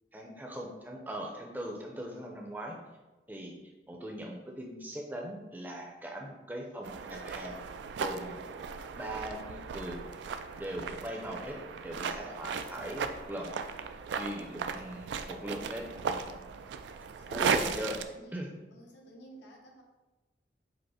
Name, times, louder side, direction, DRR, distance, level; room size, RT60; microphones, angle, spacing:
voice 1, 0.1-2.8 3.3-3.5 3.9-7.6 8.0-8.3 9.0-10.0 10.6-13.5 14.2-16.2 17.3-18.0 18.3-18.5, equal, 10° right, 0 dB, 0.5 m, -40 dB
sound 1, 6.8-18.0, right 6 dB, 80° right, 0.3 m, -36 dB
voice 2, 14.6-15.1 17.1-18.4 18.7-19.8, right 1 dB, 90° left, 0 dB, 0.8 m, -54 dB
5.0 x 2.1 x 4.7 m, 1.1 s
head